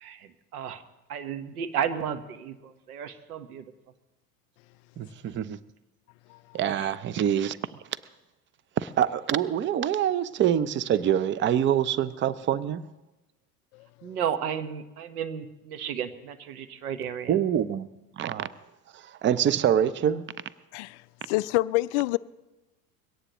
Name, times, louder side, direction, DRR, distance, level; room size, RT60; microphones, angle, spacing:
voice 1, 0.0-0.8 1.1-3.6 14.0-17.4, right 8 dB, 75° right, 1.3 m, -33 dB
voice 2, 5.0-5.6 6.5-7.6 8.8-12.8 17.3-17.9 18.2-18.5 19.2-20.3, right 10 dB, 25° right, 0.6 m, -25 dB
voice 3, 21.3-22.2, left 19 dB, 50° left, 0.5 m, -27 dB
22.5 x 17.5 x 3.0 m
hypercardioid pair, 80°, 45 cm